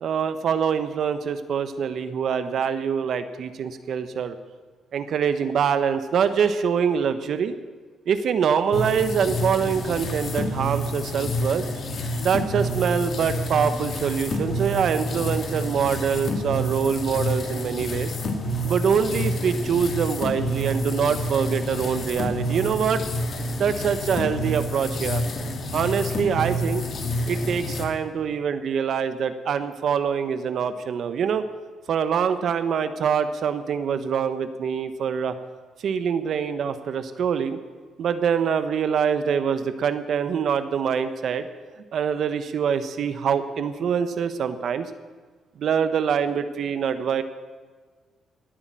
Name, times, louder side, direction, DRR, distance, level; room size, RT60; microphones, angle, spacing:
voice 1, 0.0-4.4 4.9-7.5 8.1-11.6 12.2-18.1 18.6-23.0 23.6-25.2 25.7-26.8 27.3-31.5 31.9-35.3 35.8-37.6 38.0-41.5 41.9-44.9 45.6-47.2, right 7 dB, 65° right, 11 dB, 1.0 m, -24 dB
sound 1, 8.7-27.9, left 1 dB, 55° left, 2.3 m, -28 dB
19.5 x 8.9 x 7.6 m, 1.5 s
cardioid pair, 90°, 0 cm